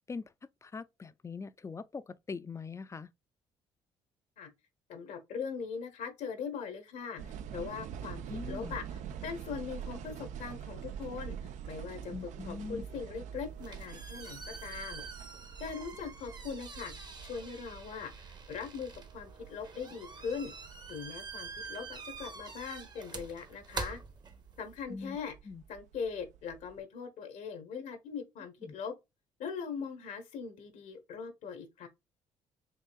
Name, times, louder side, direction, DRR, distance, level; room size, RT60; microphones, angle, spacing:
voice 1, 0.1-3.1 8.3-8.8 12.1-12.9 24.9-25.2 25.5-25.6 28.6-28.7, left 4 dB, 20° left, 0.4 m, -42 dB
voice 2, 4.9-15.0 15.6-20.5 20.9-24.0 24.6-25.3 25.7-28.9 29.4-31.9, left 6 dB, 70° left, 1.0 m, -41 dB
sound 1, 7.2-26.8, right 8 dB, 65° right, 0.5 m, -46 dB
sound 2, 13.4-24.8, right 4 dB, 35° right, 0.9 m, -46 dB
4.7 x 2.8 x 2.2 m
hypercardioid pair, 55°, 13 cm